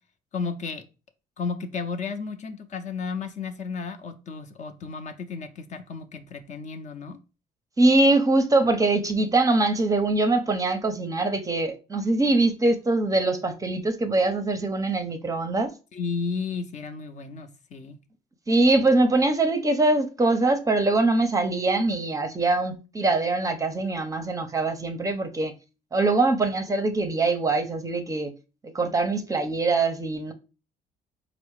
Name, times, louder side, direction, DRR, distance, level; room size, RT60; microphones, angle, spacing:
voice 1, 0.3-0.8 1.4-7.2 15.9-18.0, left 5 dB, 45° left, 0.6 m, -33 dB
voice 2, 7.8-15.7 18.5-25.5 25.9-28.3 28.6-30.3, right 2 dB, 20° right, 0.6 m, -23 dB
4.4 x 2.0 x 4.6 m
cardioid pair, 110°, 17 cm